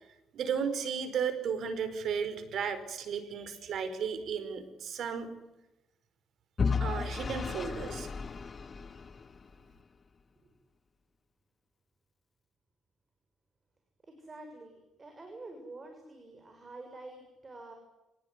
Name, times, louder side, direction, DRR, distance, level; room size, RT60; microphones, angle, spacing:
voice 1, 0.3-5.3 6.8-8.1, right 6 dB, 70° right, 11 dB, 4.6 m, -34 dB
Vehicle / Engine, 6.6-9.6, left 5 dB, 35° left, 1.2 m, -33 dB
voice 2, 14.1-17.8, right 2 dB, 30° right, 5 dB, 6.7 m, -48 dB
26.0 x 18.5 x 9.7 m, 0.99 s
cardioid pair, 90°, 0 cm